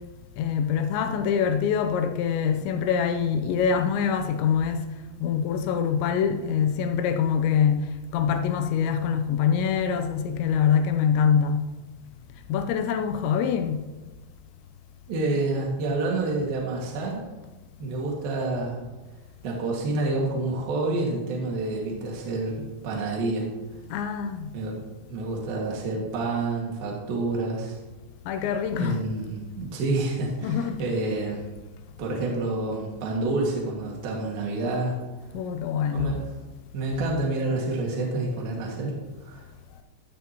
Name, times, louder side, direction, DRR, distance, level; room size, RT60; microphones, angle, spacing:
voice 1, 0.4-4.9 5.2-7.9 8.1-11.7 12.5-13.8 23.9-24.5 28.3-29.0 30.4-30.8 35.3-36.2, left 7 dB, 90° left, 3.1 m, -24 dB
voice 2, 15.1-17.2 17.8-18.8 19.4-23.5 24.5-24.8 25.1-27.8 28.8-31.4 32.0-35.0 35.9-36.3 36.7-39.5, right 2 dB, 60° right, 3.6 m, -28 dB
16.5 x 13.5 x 3.0 m
omnidirectional pair, 5.0 m